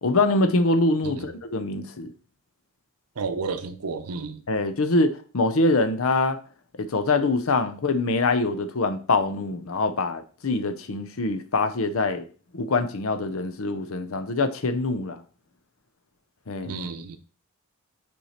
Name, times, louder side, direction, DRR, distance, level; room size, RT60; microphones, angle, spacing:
voice 1, 0.0-2.1 4.5-6.4 6.8-12.2 12.5-15.2 16.5-16.7, left 2 dB, 65° left, 0.6 m, -24 dB
voice 2, 3.2-4.4 16.6-17.2, right 4 dB, 85° right, 0.7 m, -32 dB
5.6 x 4.6 x 4.3 m
head